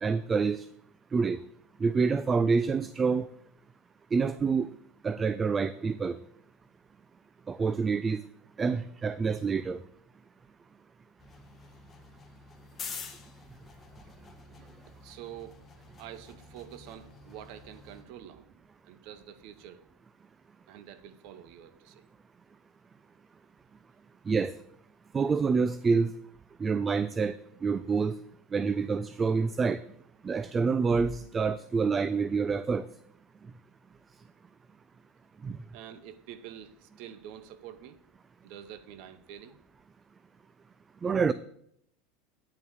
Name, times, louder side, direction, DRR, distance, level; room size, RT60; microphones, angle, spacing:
voice 1, 0.0-0.7 1.1-1.4 1.8-3.3 4.1-4.7 5.0-6.2 7.5-8.2 8.6-9.8 24.3-24.5 25.1-26.1 26.6-27.4 27.6-28.2 28.5-29.8 30.2-32.9 35.4-35.6 41.0-41.3, right 5 dB, 20° right, 15 dB, 0.3 m, -27 dB
sound 1, 11.2-18.0, left 5 dB, 20° left, 1.6 m, -47 dB
voice 2, 12.8-13.1 14.5-15.6 16.0-19.8 20.7-22.0 35.7-38.0 38.4-39.6, right 10 dB, 60° right, 13 dB, 0.8 m, -47 dB
9.1 x 5.4 x 6.4 m, 0.71 s
supercardioid pair, 115°, 0 cm